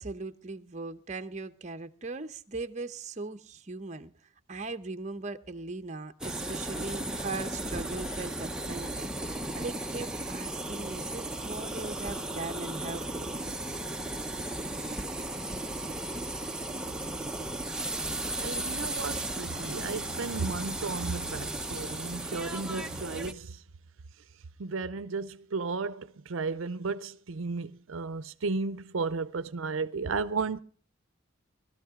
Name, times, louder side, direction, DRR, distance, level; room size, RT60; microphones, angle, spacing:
voice 1, 0.0-4.1 4.5-13.4, right 3 dB, 35° right, 0.8 m, -39 dB
sound 1, 6.2-23.3, right 1 dB, 5° right, 0.8 m, -35 dB
voice 2, 18.4-23.6 24.6-30.6, right 4 dB, 75° right, 0.6 m, -34 dB
sound 2, 19.0-21.9, left 2 dB, 85° left, 1.2 m, -49 dB
19.5 x 13.0 x 3.7 m
head